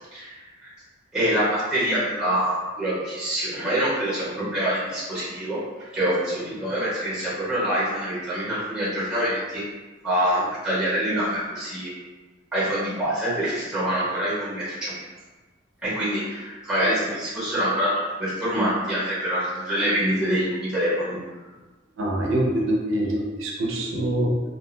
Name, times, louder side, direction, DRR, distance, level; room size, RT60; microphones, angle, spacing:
voice 1, 1.1-9.6 10.0-11.9 12.5-14.9 15.8-21.2, equal, 5° right, -8 dB, 0.8 m, -25 dB
voice 2, 22.0-24.4, right 1 dB, 75° right, -2 dB, 0.5 m, -24 dB
2.3 x 2.1 x 3.1 m, 1.3 s
head